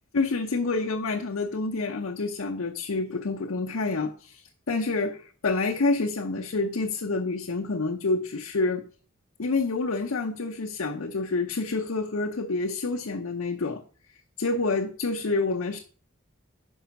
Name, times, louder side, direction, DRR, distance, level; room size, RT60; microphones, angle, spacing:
voice 1, 0.1-8.8 9.4-13.8 14.4-15.8, left 3 dB, 80° left, 0.7 m, -28 dB
5.5 x 5.0 x 5.8 m
head